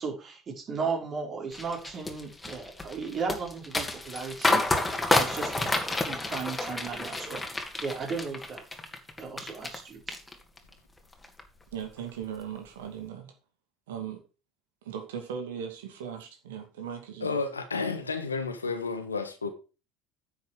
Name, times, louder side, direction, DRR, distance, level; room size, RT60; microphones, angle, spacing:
voice 1, 0.0-7.5 7.8-8.6 9.2-10.2, right 5 dB, 40° right, 5.0 m, -35 dB
sound 1, 1.5-9.8 10.1-10.7 11.1-11.4, left 2 dB, 15° left, 2.5 m, -29 dB
voice 2, 11.7-13.3 13.9-14.2 14.8-17.4, right 8 dB, 75° right, 2.3 m, -38 dB
voice 3, 17.2-19.5, left 4 dB, 90° left, 1.4 m, -31 dB
9.9 x 7.8 x 5.1 m
hypercardioid pair, 65°, 0 cm